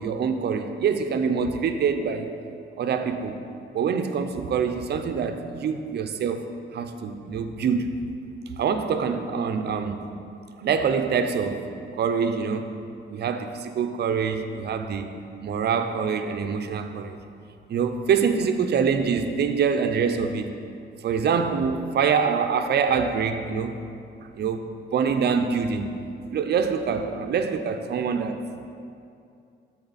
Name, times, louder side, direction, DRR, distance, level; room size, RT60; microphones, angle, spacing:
voice 1, 0.0-2.3 2.8-3.4 3.7-7.9 8.6-10.1 10.6-11.6 11.9-12.8 13.1-15.1 15.4-17.2 17.7-20.5 21.0-23.8 24.3-24.7 24.9-26.0 26.3-28.5, right 6 dB, 55° right, 7 dB, 0.6 m, -25 dB
13.0 x 4.4 x 4.1 m, 2.5 s
cardioid pair, 90°, 20 cm